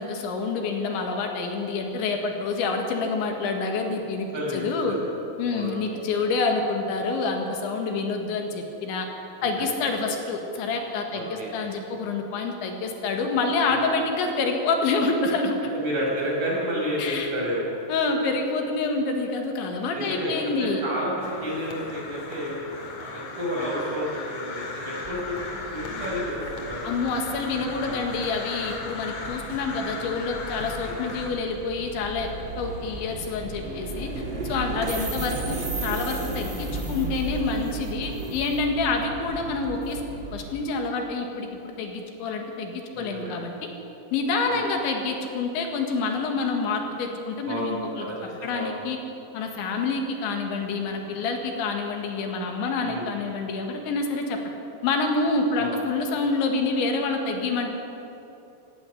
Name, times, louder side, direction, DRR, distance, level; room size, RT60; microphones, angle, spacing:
voice 1, 0.0-5.0 5.4-9.1 9.4-15.6 17.0-17.3 17.9-20.8 26.8-32.3 32.6-34.1 34.4-40.0 40.3-43.7 44.1-48.1 48.4-49.0 49.3-54.4 54.8-57.7, left 3 dB, 80° left, 3 dB, 4.2 m, -27 dB
voice 2, 4.3-5.1 5.5-5.8 9.4-9.8 11.1-11.5 13.7-13.9 15.7-17.6 19.9-22.5 23.0-26.9 27.8-28.1 30.8-31.0 33.6-33.9 34.8-35.0 37.9-38.4 42.9-43.4 44.5-44.6 47.5-48.7 52.8-53.1 55.6-55.8, equal, 40° right, -4 dB, 7.3 m, -31 dB
Crow, 21.2-31.3, left 3 dB, 45° left, 2.8 m, -37 dB
sound 1, 25.0-40.7, right 2 dB, 25° right, 1.0 m, -35 dB
18.5 x 15.5 x 9.9 m, 2.9 s
omnidirectional pair, 5.2 m